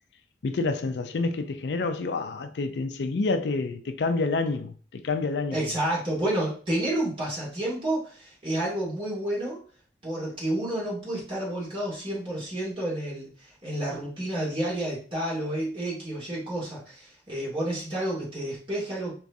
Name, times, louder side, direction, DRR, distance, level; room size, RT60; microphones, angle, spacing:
voice 1, 0.4-5.6, left 3 dB, 75° left, 0.4 m, -28 dB
voice 2, 5.5-9.6 10.0-19.2, right 1 dB, 30° right, 2.1 m, -30 dB
4.7 x 3.0 x 2.6 m
head